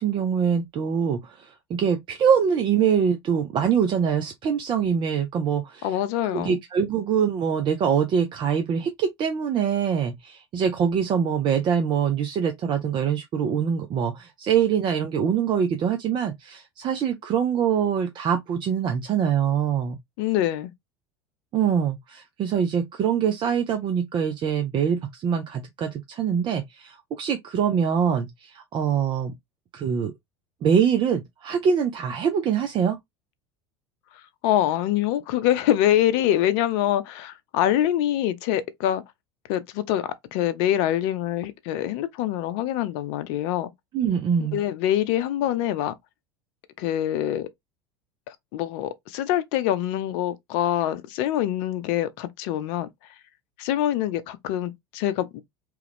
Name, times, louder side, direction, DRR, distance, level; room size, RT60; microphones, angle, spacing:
voice 1, 0.0-5.9 6.3-20.0 21.5-29.3 29.7-30.1 30.6-33.0 43.9-44.6, right 7 dB, 35° right, 0.6 m, -24 dB
voice 2, 5.8-6.6 20.2-20.7 34.4-39.0 39.5-43.7 44.4-45.9 46.8-47.5 48.3-52.9 53.6-55.4, left 12 dB, 55° left, 0.6 m, -25 dB
3.0 x 2.3 x 3.4 m
figure-of-eight pair, 75°, 14 cm